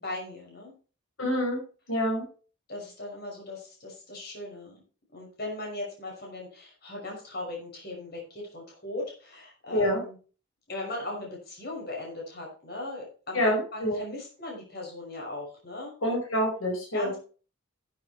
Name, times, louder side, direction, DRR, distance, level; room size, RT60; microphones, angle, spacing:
voice 1, 0.0-0.7 2.7-4.7 5.1-10.2 10.7-15.9 16.9-17.2, left 2 dB, 50° left, -1 dB, 5.9 m, -38 dB
voice 2, 1.2-1.6 1.9-2.2 9.7-10.0 13.3-14.0 16.0-17.2, equal, 85° left, 0 dB, 4.8 m, -26 dB
11.0 x 8.9 x 4.4 m, 0.38 s
head